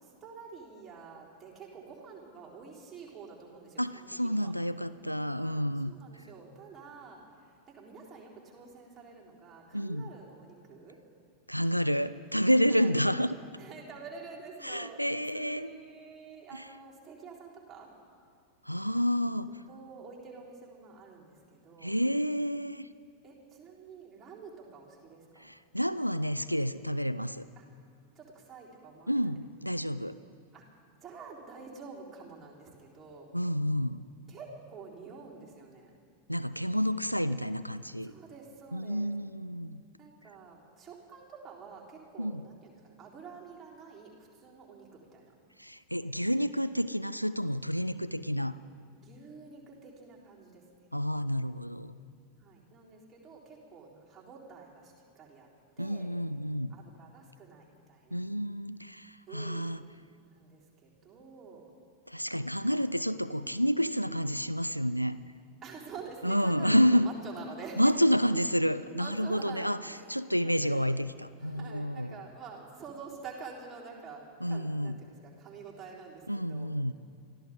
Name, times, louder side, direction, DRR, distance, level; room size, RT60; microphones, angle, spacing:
voice 1, 0.0-4.5 5.3-7.2 7.7-11.0 12.7-12.9 13.6-15.1 15.3-17.9 19.7-22.0 23.2-25.5 27.6-27.7 28.2-29.3 30.5-30.6 31.0-33.3 34.3-35.9 38.0-39.1 40.0-45.3 49.0-50.6 52.4-55.5 55.8-56.1 56.7-58.2 59.3-59.7 60.3-61.7 62.6-62.8 65.6-67.9 69.0-70.1 70.4-70.8 71.4-74.2 74.5-76.7, right 5 dB, 20° right, -4 dB, 3.9 m, -48 dB
voice 2, 3.8-6.2 9.7-10.1 11.5-13.4 14.6-15.7 16.5-16.7 18.6-19.6 21.8-22.9 25.4-27.5 29.1-30.2 33.3-34.0 36.3-38.1 38.7-39.8 42.2-42.5 45.6-48.6 50.9-52.0 55.8-56.7 58.1-59.8 62.1-65.2 66.2-67.1 67.8-72.2 74.4-75.0 76.3-76.9, equal, 90° left, 13 dB, 0.3 m, -29 dB
25.0 x 14.5 x 3.8 m, 2.4 s
figure-of-eight pair, 90°, 0 cm